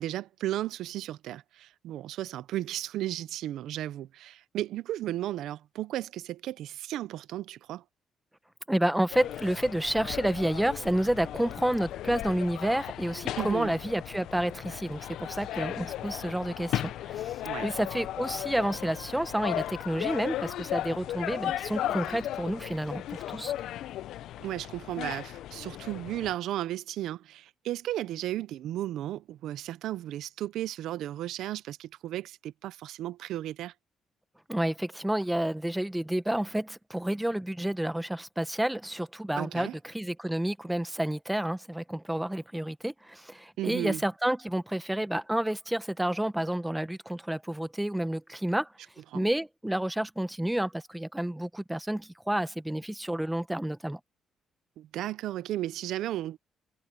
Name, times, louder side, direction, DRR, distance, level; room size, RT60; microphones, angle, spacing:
voice 1, 0.0-7.8 13.4-13.7 17.4-17.7 24.4-33.7 39.3-39.7 43.6-44.0 49.1-49.2 54.8-56.4, right 13 dB, 85° right, 0.5 m, -34 dB
voice 2, 8.7-23.5 34.5-48.7 49.1-54.0, right 1 dB, 5° right, 1.1 m, -30 dB
sound 1, 9.1-26.3, left 12 dB, 80° left, 0.6 m, -36 dB
cardioid pair, 90°, 0 cm